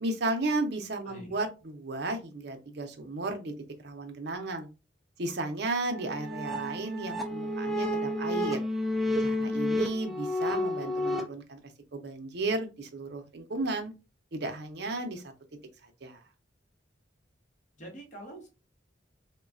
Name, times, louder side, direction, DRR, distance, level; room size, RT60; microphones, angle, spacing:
voice 1, 0.0-3.5 3.8-4.7 5.2-8.6 9.2-11.6 11.9-13.9 14.3-15.2 16.0-16.2, right 2 dB, 60° right, 5 dB, 0.6 m, -34 dB
voice 2, 1.0-1.3 17.8-18.5, right 1 dB, 40° left, -1 dB, 1.1 m, -45 dB
sound 1, 5.9-11.2, left 1 dB, ahead, 0.3 m, -30 dB
3.1 x 2.2 x 2.4 m, 0.29 s
head